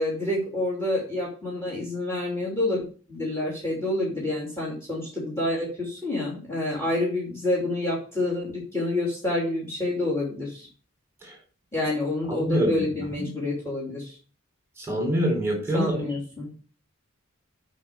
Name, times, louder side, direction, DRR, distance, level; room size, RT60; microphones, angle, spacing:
voice 1, 0.0-2.8 3.1-10.7 11.7-14.2 15.7-16.5, left 1 dB, 10° left, -3 dB, 3.1 m, -28 dB
voice 2, 12.3-12.7 13.0-13.1 14.8-16.0, equal, 10° right, 1 dB, 4.2 m, -25 dB
8.5 x 5.3 x 7.0 m, 0.39 s
head